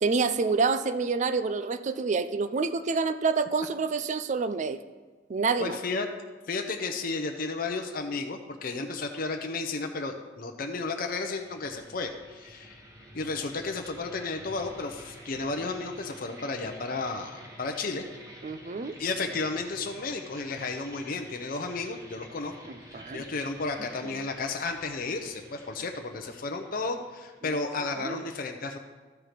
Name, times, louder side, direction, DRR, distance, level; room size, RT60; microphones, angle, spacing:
voice 1, 0.0-4.8 5.3-5.8 18.4-19.0 22.7-23.2 24.1-24.2 27.4-27.6 28.0-28.2, right 4 dB, 40° right, 12 dB, 0.4 m, -28 dB
voice 2, 5.6-6.1 6.5-12.8 13.1-18.1 19.0-22.5 22.9-28.8, left 3 dB, 50° left, 4 dB, 0.7 m, -33 dB
sound 1, 10.9-27.5, right 1 dB, 20° right, 1.2 m, -50 dB
13.0 x 4.6 x 5.1 m, 1.4 s
head